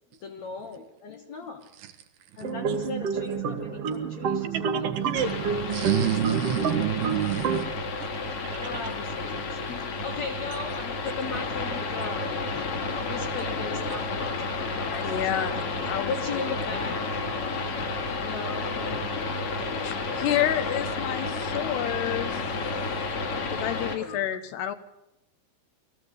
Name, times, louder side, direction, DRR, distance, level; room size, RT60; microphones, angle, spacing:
voice 1, 0.2-1.7 2.4-5.6 5.8-6.4 8.1-15.4 16.1-20.3 20.5-20.6 21.2-21.7 23.1-24.2, left 4 dB, 65° left, 4 dB, 1.8 m, -39 dB
sound 1, 2.4-7.7, right 6 dB, 55° right, 1.9 m, -29 dB
voice 2, 4.4-5.3 5.7-7.6 8.0-8.1, right 11 dB, 75° right, 7 dB, 3.3 m, -28 dB
sound 2, 5.1-24.0, left 3 dB, 45° left, 2.2 m, -31 dB
voice 3, 14.9-15.5 15.9-16.4 19.8-22.4 23.5-24.8, left 11 dB, 80° left, 10 dB, 3.2 m, -29 dB
21.5 x 15.0 x 8.2 m, 0.87 s
omnidirectional pair, 4.7 m